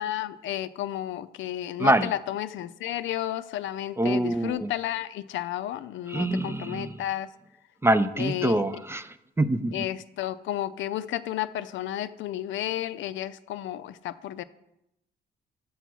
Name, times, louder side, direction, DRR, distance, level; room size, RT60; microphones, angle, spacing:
voice 1, 0.0-7.3 8.2-8.6 9.7-14.4, left 12 dB, 75° left, 13 dB, 0.4 m, -32 dB
voice 2, 4.0-4.7 6.1-6.9 7.8-9.1 9.4-9.7, right 1 dB, 10° right, 12 dB, 0.3 m, -24 dB
6.2 x 5.7 x 6.0 m, 0.85 s
cardioid pair, 90°, 20 cm